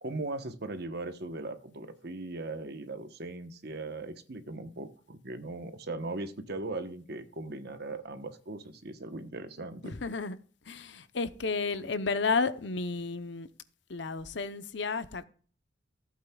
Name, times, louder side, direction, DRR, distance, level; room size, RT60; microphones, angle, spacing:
voice 1, 0.0-9.9, right 2 dB, 60° right, 1.1 m, -39 dB
voice 2, 9.8-10.4 10.7-13.5 13.9-15.2, left 4 dB, 70° left, 0.8 m, -32 dB
15.0 x 8.5 x 2.3 m
head